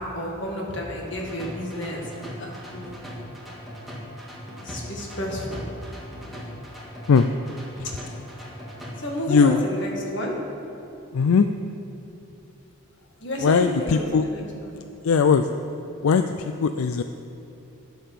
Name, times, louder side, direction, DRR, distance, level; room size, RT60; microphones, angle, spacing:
voice 1, 0.0-2.0 2.4-2.9 4.6-5.6 9.0-10.4 13.2-14.7, equal, 55° left, -1 dB, 2.1 m, -30 dB
sound 1, 1.1-9.1, equal, ahead, 1.8 m, -39 dB
voice 2, 9.3-9.6 11.1-11.5 13.4-14.3 15.0-15.5 16.0-17.0, left 5 dB, 85° left, 9 dB, 0.4 m, -19 dB
10.0 x 9.4 x 6.8 m, 2.9 s
head